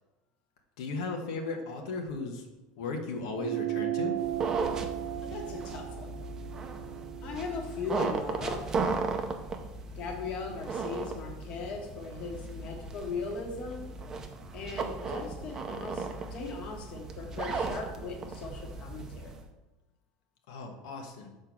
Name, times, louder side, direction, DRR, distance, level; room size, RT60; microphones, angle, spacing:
voice 1, 0.8-2.5 2.8-4.2 20.5-21.3, left 3 dB, 85° left, 2 dB, 1.3 m, -36 dB
sound 1, 3.4-8.2, right 14 dB, 70° right, 0.4 m, -36 dB
sound 2, 4.2-19.4, right 4 dB, 20° right, 0.6 m, -36 dB
voice 2, 5.2-6.1 7.2-8.7 9.9-13.9 14.5-19.3, left 4 dB, 35° left, 0 dB, 1.5 m, -38 dB
6.6 x 4.5 x 6.0 m, 1.1 s
cardioid pair, 170°, 3 cm